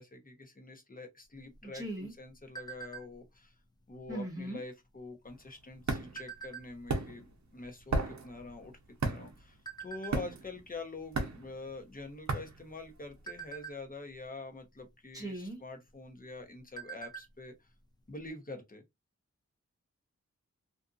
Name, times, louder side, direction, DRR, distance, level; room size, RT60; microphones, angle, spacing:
voice 1, 0.0-3.5 3.9-8.7 9.0-17.5 18.1-18.8, left 3 dB, 30° left, 0.9 m, -46 dB
sound 1, 1.4-3.4 3.8-4.1 4.4-4.8 5.5-7.0 7.6-7.7 7.9-9.2 9.7-10.2 10.7-10.9 11.2-11.4 11.9-12.4 12.9-14.3 15.3-15.5 15.9-16.0 16.4-17.4 17.7-17.8 18.2-18.3, right 6 dB, 15° left, 0.5 m, -46 dB
voice 2, 1.6-2.1 4.1-4.6 15.1-15.6, right 1 dB, 10° right, 0.9 m, -39 dB
sound 2, 5.3-13.4, right 3 dB, 70° right, 0.7 m, -36 dB
2.6 x 2.5 x 2.4 m
wide cardioid pair, 65°, 30 cm